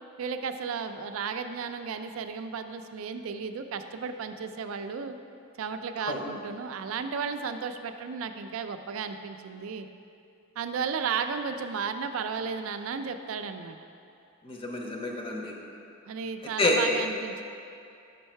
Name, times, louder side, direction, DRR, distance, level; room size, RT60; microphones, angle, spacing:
voice 1, 0.2-5.2 5.6-9.9 10.6-13.8 16.1-17.4, right 6 dB, 80° right, 8 dB, 0.4 m, -34 dB
voice 2, 14.4-15.5 16.6-16.8, left 2 dB, 25° left, 0 dB, 0.7 m, -28 dB
5.5 x 5.2 x 4.4 m, 2.6 s
head